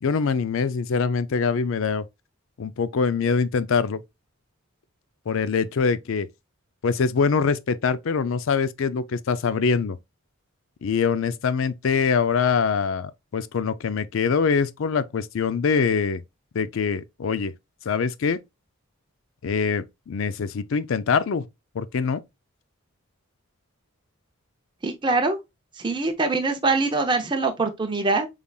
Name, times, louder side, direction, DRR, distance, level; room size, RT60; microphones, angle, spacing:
voice 1, 0.0-2.0 2.6-4.0 5.3-6.3 6.8-10.0 10.8-16.2 16.5-17.5 17.9-18.4 19.4-21.5 21.7-22.2, left 5 dB, 60° left, 0.4 m, -24 dB
voice 2, 24.8-25.4 25.8-28.3, right 3 dB, 20° right, 0.6 m, -23 dB
5.3 x 3.3 x 2.3 m
head